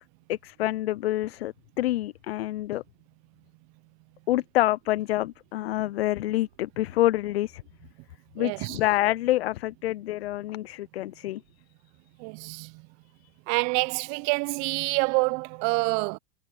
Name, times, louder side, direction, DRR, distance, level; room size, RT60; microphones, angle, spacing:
voice 1, 0.3-2.8 4.3-7.6 8.4-11.4, left 15 dB, 70° left, 0.7 m, -27 dB
voice 2, 8.4-8.8 12.2-12.8 13.5-16.2, right 32 dB, 45° right, 1.0 m, -27 dB
hypercardioid pair, 100°, 33 cm